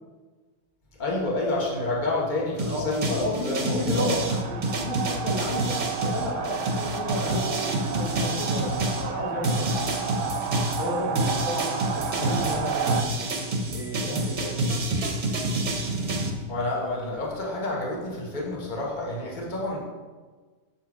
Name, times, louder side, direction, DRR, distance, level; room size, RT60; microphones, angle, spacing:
voice 1, 1.0-4.2 14.0-14.3 15.6-15.7 16.5-19.8, left 2 dB, 40° left, -3 dB, 1.4 m, -29 dB
sound 1, 2.6-9.1 9.4-16.3, right 1 dB, 40° right, 0.8 m, -28 dB
voice 2, 2.7-10.3 10.8-13.3 13.7-14.8, left 1 dB, 70° left, -4 dB, 1.6 m, -33 dB
sound 2, 3.9-13.0, right 6 dB, 80° right, 0.9 m, -32 dB
6.9 x 4.4 x 4.7 m, 1.4 s
omnidirectional pair, 1.3 m